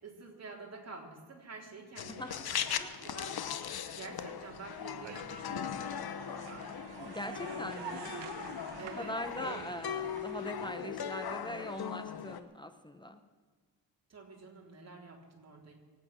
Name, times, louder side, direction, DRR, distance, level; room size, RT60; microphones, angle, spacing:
voice 1, 0.0-3.4 3.9-6.7 7.8-8.1 8.7-9.1 9.4-9.6 10.2-10.3 14.1-15.7, right 4 dB, 35° right, -1 dB, 3.6 m, -48 dB
sound 1, 2.0-12.4, left 8 dB, 55° left, 1.0 m, -39 dB
voice 2, 2.1-2.5 2.8-3.0 7.0-8.2 8.8-13.2, equal, 10° left, 9 dB, 0.8 m, -41 dB
sound 2, 4.2-10.7, right 7 dB, 70° right, 1.6 m, -48 dB
24.0 x 8.8 x 6.1 m, 1.6 s
cardioid pair, 110°, 44 cm